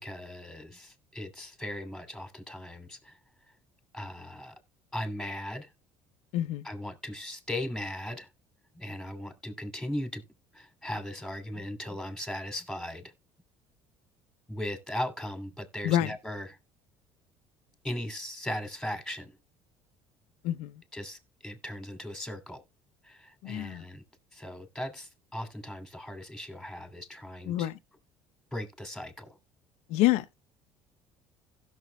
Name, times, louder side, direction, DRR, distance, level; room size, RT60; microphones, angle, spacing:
voice 1, 0.0-3.2 3.9-4.5 4.9-5.7 6.6-8.3 8.7-10.2 10.5-13.1 14.5-16.6 17.8-19.3 20.9-22.6 23.0-24.0 24.3-27.7 28.5-29.3, left 1 dB, ahead, 2.8 m, -38 dB
voice 2, 6.3-6.6 15.8-16.1 20.4-20.8 23.4-23.8 27.5-27.8 29.9-30.3, left 14 dB, 75° left, 0.7 m, -27 dB
16.0 x 6.4 x 2.3 m
supercardioid pair, 75°, 11 cm